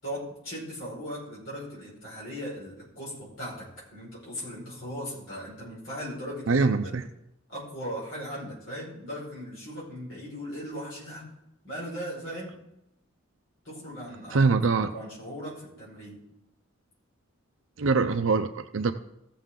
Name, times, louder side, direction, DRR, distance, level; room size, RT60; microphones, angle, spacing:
voice 1, 0.0-3.7 3.9-6.9 7.5-11.3 11.6-12.6 13.6-14.5 14.8-16.2, equal, 65° left, -6 dB, 5.0 m, -38 dB
voice 2, 6.5-7.0 14.3-14.9 17.8-18.9, right 4 dB, 65° right, 7 dB, 0.6 m, -23 dB
16.0 x 6.8 x 3.8 m, 0.83 s
head